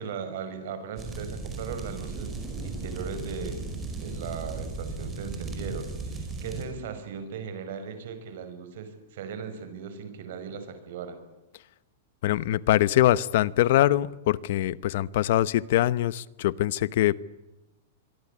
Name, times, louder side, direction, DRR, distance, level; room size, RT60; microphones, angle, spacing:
voice 1, 0.0-2.4 2.6-3.6 4.0-11.2, right 6 dB, 50° right, 9 dB, 5.9 m, -38 dB
sound 1, 1.0-6.6, right 3 dB, 10° right, 5.0 m, -36 dB
voice 2, 12.2-17.1, left 14 dB, 50° left, 19 dB, 0.9 m, -23 dB
26.0 x 23.0 x 8.5 m, 1.0 s
supercardioid pair, 175°, 0 cm